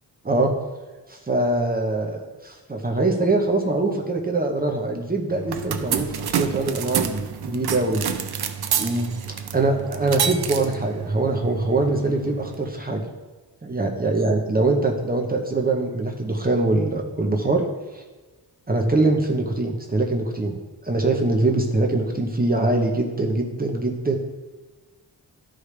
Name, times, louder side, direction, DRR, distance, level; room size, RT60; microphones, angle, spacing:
voice 1, 1.1-8.0 8.8-9.1 9.5-13.0 13.6-17.6 17.9-18.0 18.7-24.2, right 2 dB, 25° right, 1 dB, 0.8 m, -23 dB
sound 1, 5.3-12.7, right 7 dB, 70° right, 0.7 m, -29 dB
12.5 x 5.0 x 3.3 m, 1.3 s
wide cardioid pair, 150°, 39 cm